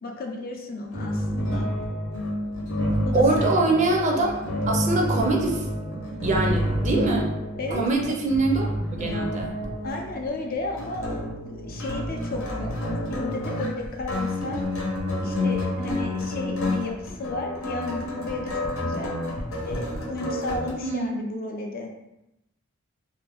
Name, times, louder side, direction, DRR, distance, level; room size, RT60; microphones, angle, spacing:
voice 1, 0.0-1.7 3.1-3.7 7.6-8.2 9.8-14.6 15.2-19.1 19.6-21.9, left 2 dB, 45° left, 1 dB, 0.5 m, -33 dB
sound 1, 0.9-20.7, left 1 dB, 85° left, 0.9 m, -29 dB
voice 2, 3.1-5.7 5.9-7.3 7.7-9.6 20.8-21.1, right 2 dB, 35° right, 0 dB, 0.5 m, -24 dB
2.6 x 2.5 x 3.4 m, 0.90 s
head